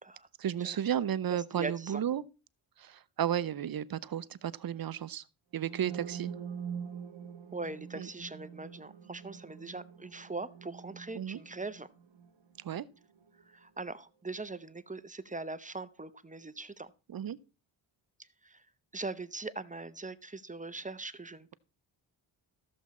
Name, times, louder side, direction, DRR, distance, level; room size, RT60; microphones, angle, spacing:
voice 1, 0.4-2.2 2.8-5.2 5.5-6.3 8.0-8.1 11.2-11.4 12.6-12.9 17.1-17.4, right 10 dB, 45° right, 0.6 m, -33 dB
voice 2, 1.5-2.0 7.5-11.9 13.4-16.9 18.2-18.7 18.9-21.5, right 3 dB, 15° right, 0.8 m, -41 dB
sound 1, 5.6-13.4, right 7 dB, 65° right, 1.7 m, -44 dB
14.0 x 7.2 x 4.2 m
cardioid pair, 80°, 49 cm